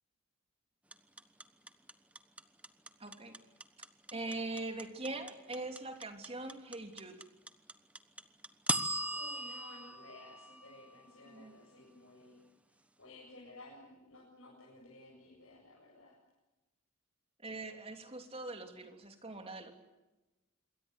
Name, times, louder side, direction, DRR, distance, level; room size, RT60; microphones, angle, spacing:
sound 1, 0.9-11.1, right 1 dB, 5° right, 1.1 m, -39 dB
voice 1, 3.0-3.4 4.1-7.2 11.2-11.6 17.4-19.7, right 2 dB, 30° right, 5 dB, 3.2 m, -42 dB
voice 2, 9.1-12.4 13.0-16.1, left 2 dB, 70° left, -3 dB, 7.9 m, -55 dB
27.0 x 22.0 x 8.3 m, 1.1 s
head